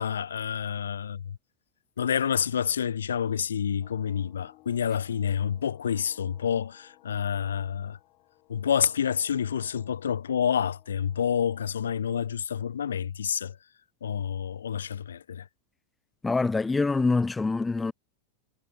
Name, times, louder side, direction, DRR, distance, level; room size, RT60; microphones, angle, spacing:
voice 1, 0.0-1.4 2.0-8.0 8.5-13.6 14.0-15.5, left 8 dB, 65° left, 0.7 m, -28 dB
sound 1, 3.8-11.9, left 22 dB, 40° left, 6.5 m, -59 dB
voice 2, 16.2-17.9, left 3 dB, 10° left, 0.6 m, -25 dB
figure-of-eight pair, 90°, 0 cm